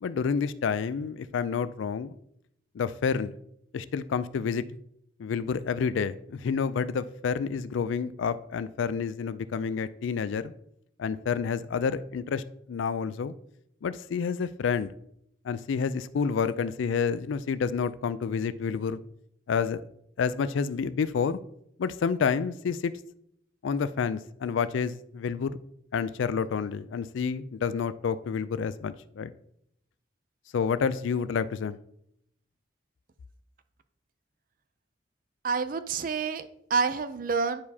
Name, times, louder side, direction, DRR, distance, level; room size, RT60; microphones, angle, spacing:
voice 1, 0.0-2.1 2.7-3.3 3.7-4.6 5.2-10.5 11.0-12.4 12.7-13.3 13.8-14.9 15.4-19.0 19.5-19.8 20.2-21.4 21.8-22.9 23.6-25.6 25.9-29.3 30.5-31.8, left 6 dB, 70° left, 15 dB, 0.3 m, -29 dB
voice 2, 35.4-37.6, right 5 dB, 45° right, 12 dB, 0.4 m, -28 dB
10.0 x 4.7 x 2.8 m, 0.74 s
head